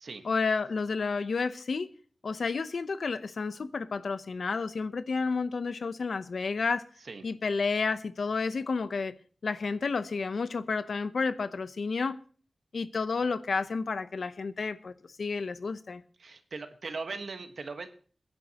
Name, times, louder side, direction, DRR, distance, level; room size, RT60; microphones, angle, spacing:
voice 1, 0.2-1.9 2.2-6.8 7.2-9.1 9.4-12.2 12.7-14.9 15.2-16.0, left 4 dB, 80° left, 0.7 m, -31 dB
voice 2, 16.2-17.9, right 4 dB, 75° right, 1.4 m, -39 dB
22.0 x 10.5 x 3.0 m
wide cardioid pair, 100°, 0 cm